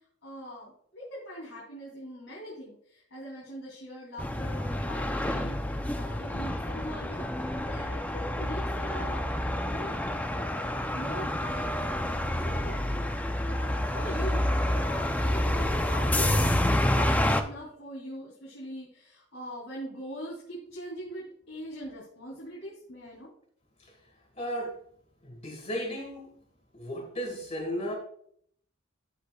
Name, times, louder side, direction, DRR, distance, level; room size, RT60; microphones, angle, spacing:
voice 1, 0.2-9.4 9.7-10.0 10.9-11.8 12.4-12.8 13.0-13.1 13.5-23.3, equal, 80° left, -5 dB, 3.0 m, -42 dB
sound 1, 4.2-17.4, left 1 dB, 10° left, 0.5 m, -28 dB
voice 2, 24.4-24.7 25.2-26.3 26.7-27.9, equal, 30° left, 1 dB, 1.7 m, -34 dB
14.0 x 5.7 x 2.4 m, 0.64 s
head